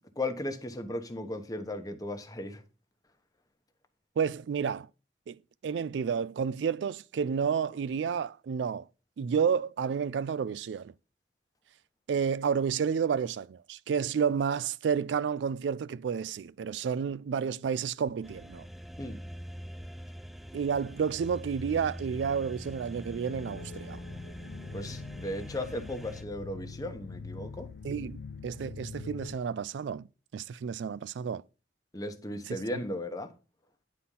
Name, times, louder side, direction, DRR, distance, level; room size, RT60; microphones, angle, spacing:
voice 1, 0.2-2.6 19.0-19.2 24.7-27.7 31.9-33.3, left 1 dB, 20° left, 1.0 m, -36 dB
voice 2, 4.2-4.9 5.3-8.9 9.2-10.9 12.1-18.7 20.5-24.0 27.8-30.1 30.3-31.4 32.5-32.6, right 6 dB, 90° right, 0.3 m, -30 dB
sound 1, 18.2-26.2, equal, ahead, 0.4 m, -44 dB
sound 2, 23.3-29.4, left 4 dB, 65° left, 0.5 m, -44 dB
9.9 x 4.3 x 5.4 m
head